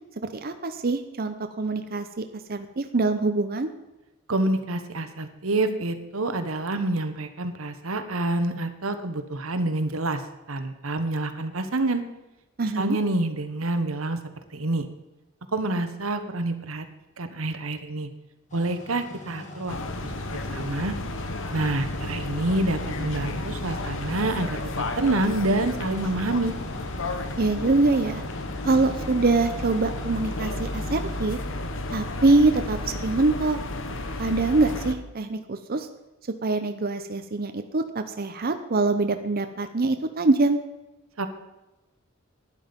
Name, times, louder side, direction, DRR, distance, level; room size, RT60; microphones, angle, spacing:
voice 1, 0.4-3.7 12.6-13.0 27.4-28.2 28.6-31.4 31.9-32.8 33.0-33.6 34.2-35.9 36.4-40.6, right 3 dB, 45° right, 7 dB, 0.8 m, -24 dB
voice 2, 4.3-10.2 10.5-12.0 12.7-14.2 14.5-14.9 15.5-16.8 17.2-18.1 18.5-19.8 20.5-20.9 21.5-26.6 41.2-41.3, right 2 dB, 90° right, 9 dB, 1.3 m, -27 dB
sound 1, 18.5-31.3, left 2 dB, 35° left, 2.0 m, -42 dB
sound 2, 19.7-35.0, left 2 dB, 65° left, 1.2 m, -32 dB
12.0 x 10.0 x 5.3 m, 1.0 s
head